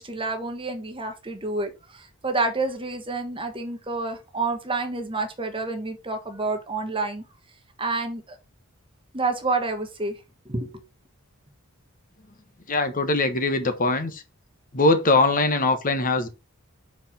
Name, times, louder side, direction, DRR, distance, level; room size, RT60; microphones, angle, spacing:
voice 1, 0.0-7.2 7.8-8.4 9.1-10.2 10.4-10.7, right 3 dB, 25° right, 1.3 m, -29 dB
voice 2, 12.7-14.2 14.7-16.3, left 2 dB, 40° left, 1.1 m, -21 dB
5.9 x 4.6 x 5.7 m
head